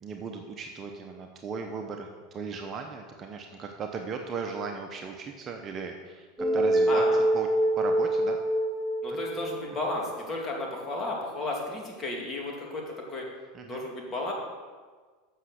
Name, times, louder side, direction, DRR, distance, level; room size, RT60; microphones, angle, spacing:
voice 1, 0.0-6.3 6.5-7.5 7.8-8.4 9.1-9.5 13.5-13.9, right 5 dB, 35° right, 3 dB, 0.9 m, -37 dB
sound 1, 6.4-10.1, right 1 dB, 5° right, 2.2 m, -25 dB
voice 2, 6.9-7.2 9.0-13.3 13.6-14.3, left 2 dB, 25° left, -2 dB, 2.6 m, -33 dB
7.8 x 6.3 x 6.5 m, 1.5 s
hypercardioid pair, 90°, 0 cm